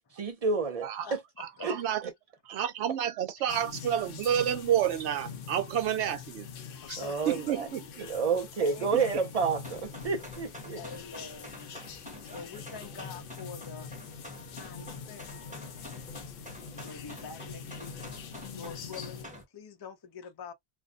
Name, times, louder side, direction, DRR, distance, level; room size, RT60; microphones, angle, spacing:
voice 1, 0.2-0.9 1.6-1.8 7.0-7.7 8.0-10.8, right 5 dB, 60° right, 0.3 m, -29 dB
voice 2, 1.6-2.0 2.5-6.5 6.9-7.0 7.3-8.1, right 10 dB, 80° right, 0.9 m, -29 dB
sound 1, 3.5-19.3, left 6 dB, 65° left, 0.7 m, -44 dB
voice 3, 6.7-7.6 8.6-9.3 10.7-11.6 12.3-13.9 14.5-15.2 16.6-18.0 18.5-20.5, left 5 dB, 30° left, 0.4 m, -45 dB
sound 2, 9.6-19.4, left 1 dB, 10° right, 0.8 m, -47 dB
2.6 x 2.0 x 2.4 m
omnidirectional pair, 1.1 m